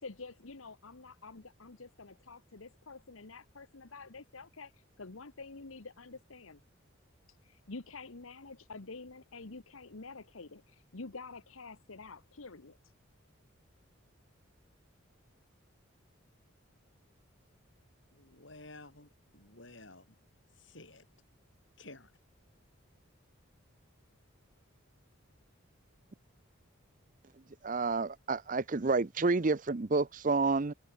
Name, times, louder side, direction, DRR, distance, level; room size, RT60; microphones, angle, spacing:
voice 1, 0.0-6.6 7.3-12.9, left 3 dB, 80° left, 1.3 m, -48 dB
voice 2, 18.1-20.2 20.5-21.1 21.8-22.1, left 2 dB, 60° left, 6.3 m, -53 dB
voice 3, 27.6-30.7, right 3 dB, 40° right, 0.6 m, -29 dB
head